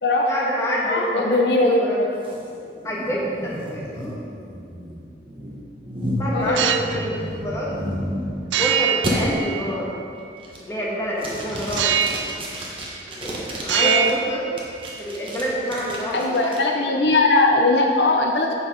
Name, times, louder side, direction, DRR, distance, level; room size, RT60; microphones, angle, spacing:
voice 1, 0.3-2.0 2.8-4.2 6.2-7.7 8.6-9.9 10.6-12.0 13.2-14.4 15.0-16.8, equal, 15° left, -5 dB, 1.5 m, -27 dB
voice 2, 0.9-2.2 6.3-6.6 13.8-14.1 16.1-18.5, left 2 dB, 70° left, 1 dB, 0.7 m, -20 dB
sound 1, 2.2-8.6 9.0-9.1 9.7-10.0 10.4-10.8 11.2-14.1 14.6-16.6, equal, 30° right, 1.2 m, -32 dB
sound 2, 6.4-7.0 8.5-10.0 11.8-12.5 12.8-13.3 13.6-15.0, right 9 dB, 85° right, 0.4 m, -24 dB
8.2 x 6.2 x 5.0 m, 2.4 s
head